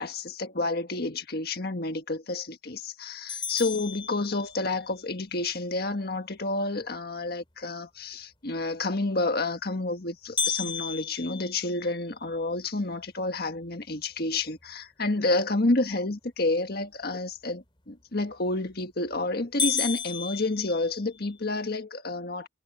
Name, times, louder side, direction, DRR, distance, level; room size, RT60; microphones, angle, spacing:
voice 1, 0.0-22.5, left 2 dB, 60° left, 1.6 m, -29 dB
sound 1, 3.3-4.9 10.4-12.5 13.0-13.1 13.6-13.7 14.4-14.7 18.3-18.7 19.1-19.2 19.6-21.3, left 5 dB, 30° left, 2.8 m, -33 dB
head